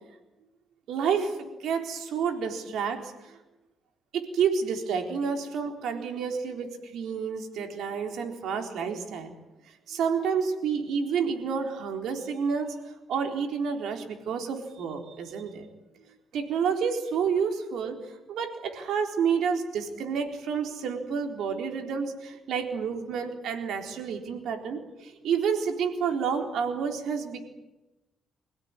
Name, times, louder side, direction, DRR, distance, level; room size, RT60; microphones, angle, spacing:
voice 1, 0.9-3.4 4.1-9.3 9.9-15.7 16.3-27.4, right 6 dB, 80° right, 4 dB, 4.0 m, -29 dB
26.0 x 16.5 x 9.8 m, 1.0 s
cardioid pair, 105°, 0 cm